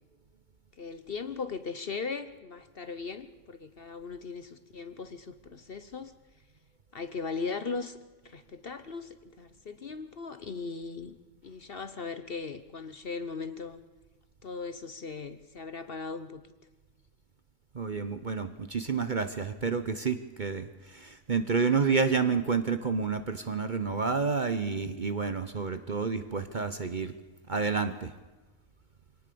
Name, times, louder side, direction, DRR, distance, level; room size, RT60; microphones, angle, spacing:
voice 1, 0.8-6.1 6.9-8.0 8.2-11.2 11.4-13.8 14.4-16.4, left 4 dB, 45° left, 11 dB, 1.0 m, -38 dB
voice 2, 17.7-27.1 27.5-28.1, right 5 dB, 40° right, 10 dB, 0.9 m, -29 dB
23.5 x 18.0 x 6.9 m, 1.2 s
omnidirectional pair, 1.5 m